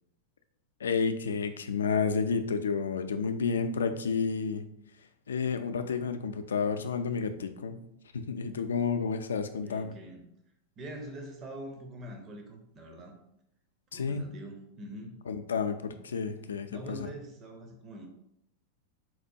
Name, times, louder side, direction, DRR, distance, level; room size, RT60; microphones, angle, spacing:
voice 1, 0.8-4.6 5.3-7.8 8.1-9.9 13.9-14.3 15.3-17.0, left 5 dB, 80° left, 8 dB, 0.3 m, -30 dB
voice 2, 9.6-10.3 10.8-13.2 13.9-15.2 16.7-18.1, right 1 dB, 35° right, 3 dB, 0.7 m, -44 dB
4.3 x 2.2 x 2.7 m, 0.76 s
hypercardioid pair, 100°, 0 cm